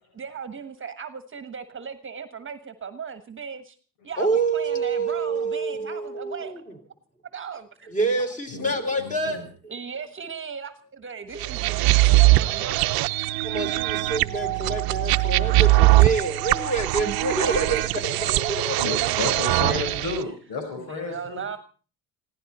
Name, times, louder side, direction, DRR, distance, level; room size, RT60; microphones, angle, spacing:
voice 1, 0.2-3.8 4.0-6.5 7.2-7.9 9.7-13.4 17.0-17.2 17.7-19.1 19.8-20.0 20.2-20.3 20.8-21.6, right 5 dB, 35° right, 11 dB, 1.3 m, -37 dB
voice 2, 4.2-6.6 7.9-9.4 13.4-17.8 18.2-19.1, right 3 dB, 20° left, 5 dB, 4.0 m, -27 dB
voice 3, 9.0-9.5 18.8-21.4, left 3 dB, 75° left, 5 dB, 4.7 m, -31 dB
sound 1, 11.4-20.2, right 18 dB, 75° right, 0.7 m, -21 dB
20.0 x 16.0 x 4.3 m, 0.39 s
cardioid pair, 95°, 36 cm